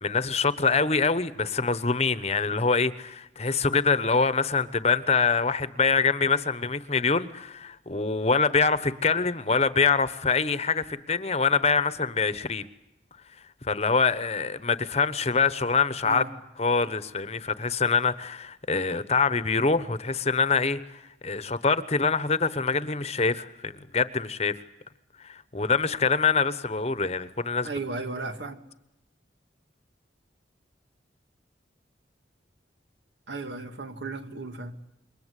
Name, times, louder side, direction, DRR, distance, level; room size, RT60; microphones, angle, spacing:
voice 1, 0.0-12.7 13.6-16.2 16.6-24.6 25.2-27.7, left 4 dB, 35° left, 1.1 m, -25 dB
voice 2, 27.6-28.6 33.3-34.8, right 3 dB, 75° right, 2.2 m, -35 dB
27.5 x 23.0 x 8.3 m
head